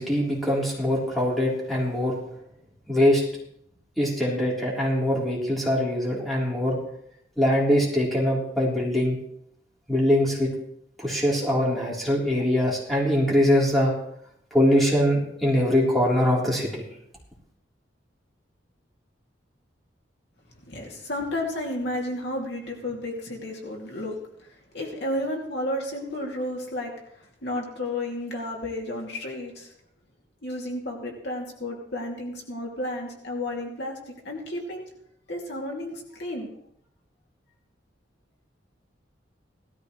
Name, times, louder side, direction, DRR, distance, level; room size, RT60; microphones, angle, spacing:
voice 1, 0.0-2.1 2.9-3.2 4.0-6.8 7.4-9.2 9.9-10.5 11.0-13.9 14.5-16.8, left 1 dB, ahead, -6 dB, 3.7 m, -22 dB
voice 2, 20.6-29.7 30.4-34.8 35.3-36.5, left 1 dB, 65° left, -1 dB, 2.6 m, -32 dB
18.0 x 13.5 x 3.2 m, 0.73 s
head